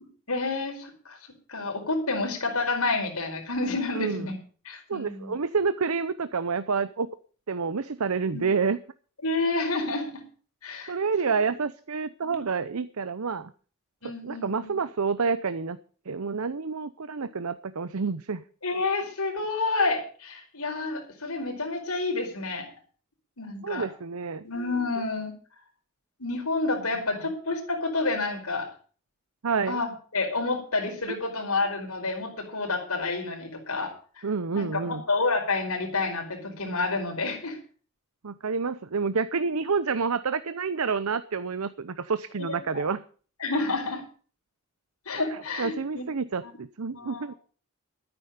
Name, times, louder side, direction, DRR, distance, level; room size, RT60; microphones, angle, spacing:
voice 1, 0.3-1.2 1.5-4.4 4.6-5.3 8.3-8.4 9.2-10.1 10.6-10.9 12.2-12.4 14.0-14.8 18.6-22.7 23.4-23.9 24.4-25.3 26.2-28.7 29.7-33.9 34.5-37.6 42.4-42.8 43.4-44.0 45.0-46.1 46.4-46.5 46.9-47.4, left 3 dB, 90° left, 2 dB, 5.0 m, -29 dB
voice 2, 4.9-7.1 7.5-8.8 10.9-13.5 14.2-15.8 16.1-18.4 23.6-24.4 29.4-29.8 31.1-31.2 34.2-35.0 38.2-43.0 45.3-47.3, right 5 dB, 85° right, 13 dB, 0.7 m, -28 dB
13.0 x 9.9 x 6.7 m, 0.42 s
head